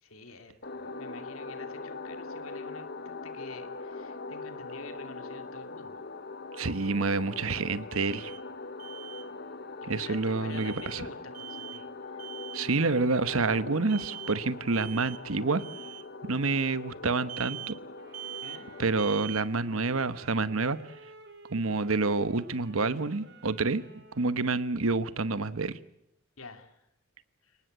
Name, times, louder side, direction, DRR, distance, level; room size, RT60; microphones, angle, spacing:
voice 1, 0.0-6.0 9.8-11.9 18.4-18.7 26.4-26.8 27.4-27.6, left 3 dB, 75° left, 8 dB, 2.7 m, -48 dB
sound 1, 0.6-19.2, left 3 dB, 50° left, 1.1 m, -42 dB
voice 2, 6.6-8.3 9.9-11.1 12.5-15.6 16.2-17.7 18.8-20.8 21.5-23.8 24.1-25.8, right 3 dB, 75° right, 14 dB, 1.1 m, -28 dB
Alarm, 7.9-8.4 8.8-9.2 10.5-11.0 11.3-11.8 12.2-12.7 13.9-14.4 14.7-15.2 15.6-16.0 17.3-17.8 18.1-18.6 19.0-19.5, right 13 dB, 35° right, 1.3 m, -42 dB
sound 2, 17.9-24.5, right 2 dB, 55° right, 5.2 m, -53 dB
30.0 x 19.5 x 8.0 m, 0.83 s
head